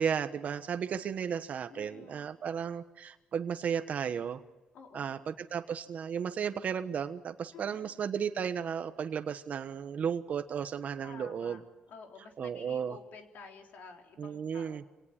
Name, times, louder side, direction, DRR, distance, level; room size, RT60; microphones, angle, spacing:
voice 1, 0.0-4.4 4.9-11.6 12.4-13.0 14.2-14.8, right 7 dB, 55° right, 9 dB, 1.3 m, -34 dB
voice 2, 1.7-2.3 4.7-5.1 7.5-7.9 11.0-14.9, left 4 dB, 70° left, 2 dB, 4.0 m, -51 dB
26.5 x 18.5 x 7.5 m, 1.1 s
cardioid pair, 100°, 3 cm